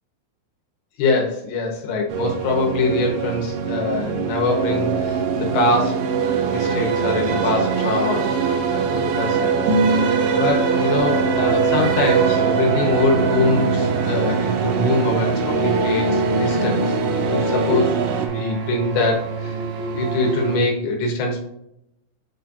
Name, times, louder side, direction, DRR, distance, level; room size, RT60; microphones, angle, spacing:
voice 1, 1.0-6.0 6.4-8.3 8.7-9.6 10.3-17.0 17.3-18.0 18.2-19.6 19.9-21.4, left 2 dB, 70° left, 1 dB, 3.4 m, -23 dB
sound 1, 2.1-18.3, right 6 dB, 90° right, 2.4 m, -25 dB
sound 2, 4.5-20.6, right 4 dB, 70° right, 3.0 m, -23 dB
8.7 x 4.4 x 2.6 m, 0.81 s
omnidirectional pair, 5.5 m